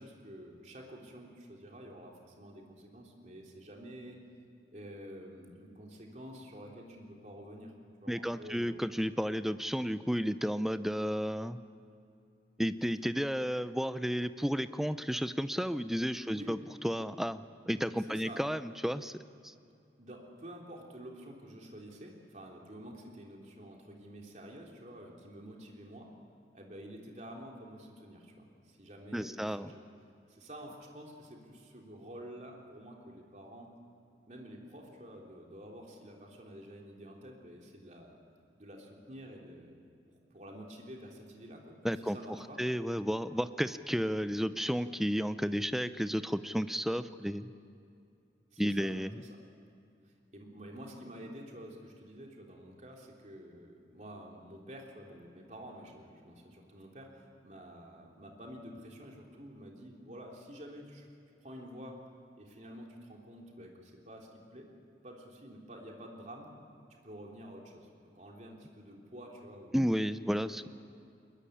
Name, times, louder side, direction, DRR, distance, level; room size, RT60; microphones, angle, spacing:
voice 1, 0.0-4.2 4.7-7.7 8.0-8.8 16.3-16.5 18.1-18.4 20.0-26.1 26.5-29.8 30.3-33.7 34.2-38.2 38.5-39.8 40.1-42.6 48.5-48.9 50.3-61.1 61.4-62.0 62.4-64.7 65.0-66.5 66.9-69.8 70.6-70.7, equal, 40° right, 0 dB, 3.4 m, -49 dB
voice 2, 8.1-11.6 12.6-16.6 16.8-17.4 17.7-19.1 19.4-19.5 29.1-29.7 41.8-42.2 42.6-47.5 48.6-49.1 69.7-70.7, equal, ahead, 12 dB, 0.5 m, -32 dB
22.0 x 21.5 x 9.9 m, 2.5 s
head